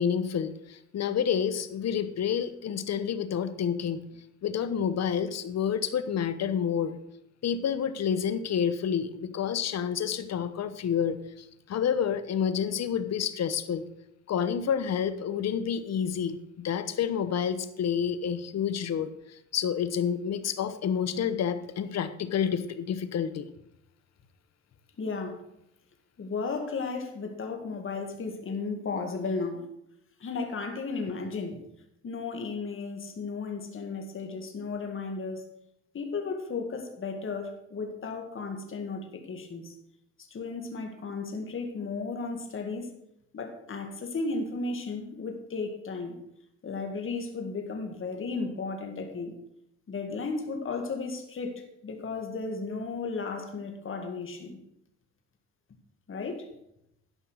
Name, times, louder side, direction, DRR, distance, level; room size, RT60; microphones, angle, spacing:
voice 1, 0.0-4.0 4.4-7.0 7.4-13.8 14.3-19.1 19.5-23.5, left 8 dB, 60° left, 12 dB, 1.0 m, -29 dB
voice 2, 25.0-25.4 26.2-29.6 30.2-31.6 32.0-35.4 35.9-39.8 40.3-42.9 43.3-46.2 46.6-49.4 49.9-54.6 56.1-56.5, left 4 dB, 45° left, 4 dB, 2.0 m, -34 dB
12.0 x 5.5 x 6.3 m, 0.81 s
cardioid pair, 90°, 30 cm